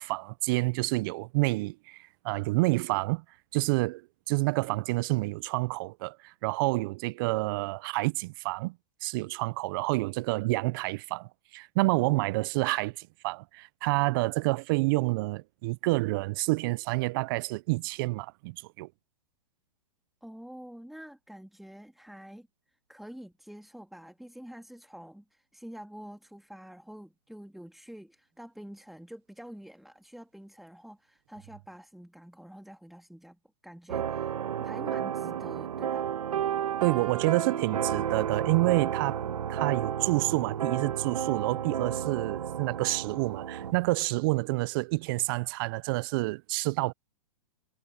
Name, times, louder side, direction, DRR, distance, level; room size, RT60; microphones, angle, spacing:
voice 1, 0.0-3.2 3.5-8.8 9.0-18.9 36.8-46.9, right 23 dB, 40° right, 0.4 m, -28 dB
voice 2, 20.2-36.1, equal, ahead, 2.2 m, -47 dB
sound 1, 33.9-43.7, right 9 dB, 85° right, 1.2 m, -32 dB
hypercardioid pair, 135°, 18 cm